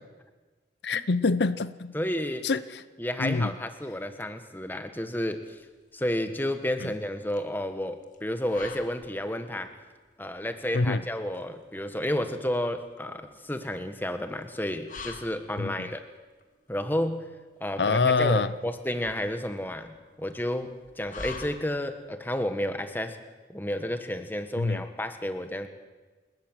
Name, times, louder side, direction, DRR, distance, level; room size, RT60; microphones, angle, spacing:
voice 1, 0.8-1.9 2.4-2.8 3.2-3.5 6.8-6.9 10.7-11.0 15.6-15.9 17.8-18.5 24.6-24.8, left 4 dB, 65° left, 15 dB, 0.7 m, -25 dB
voice 2, 1.9-2.5 3.0-5.6 5.9-9.7 10.2-16.0 16.7-17.3 17.6-23.2 23.5-25.7, left 1 dB, 10° left, 8 dB, 1.5 m, -31 dB
sound 1, 5.1-22.1, left 4 dB, 45° left, 2.3 m, -48 dB
28.5 x 14.0 x 9.1 m, 1.3 s
head